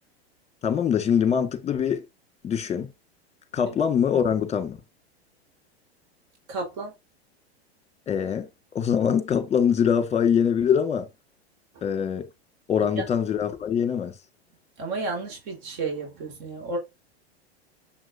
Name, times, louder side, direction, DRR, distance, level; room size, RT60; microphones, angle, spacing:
voice 1, 0.6-2.0 2.4-2.9 3.5-4.8 8.1-8.5 8.7-11.1 11.8-12.2 12.7-14.1, left 8 dB, 20° left, 1.8 m, -23 dB
voice 2, 6.5-6.9 11.7-11.8 12.9-13.0 14.8-16.8, right 3 dB, 50° right, 4.3 m, -32 dB
7.5 x 5.9 x 2.7 m
hypercardioid pair, 105°, 32 cm